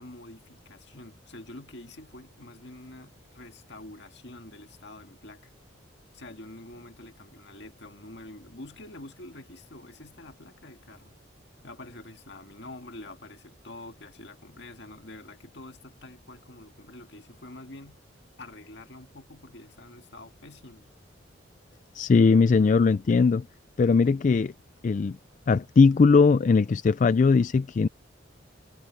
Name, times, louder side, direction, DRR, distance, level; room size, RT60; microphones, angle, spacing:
voice 1, 0.0-5.5 6.1-11.1 11.6-18.0 18.4-20.9, left 2 dB, 60° left, 2.0 m, -46 dB
voice 2, 21.9-23.5 23.8-24.5 24.8-25.2 25.5-27.9, left 4 dB, 40° left, 0.3 m, -20 dB
head